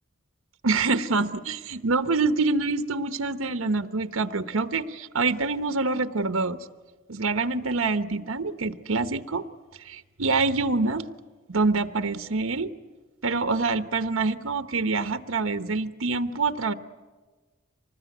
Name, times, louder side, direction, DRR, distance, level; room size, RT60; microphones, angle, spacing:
voice 1, 0.6-6.6 7.1-9.4 9.8-11.0 11.5-12.7 13.2-16.7, right 3 dB, 80° right, 10 dB, 1.0 m, -26 dB
25.0 x 20.0 x 9.4 m, 1.3 s
head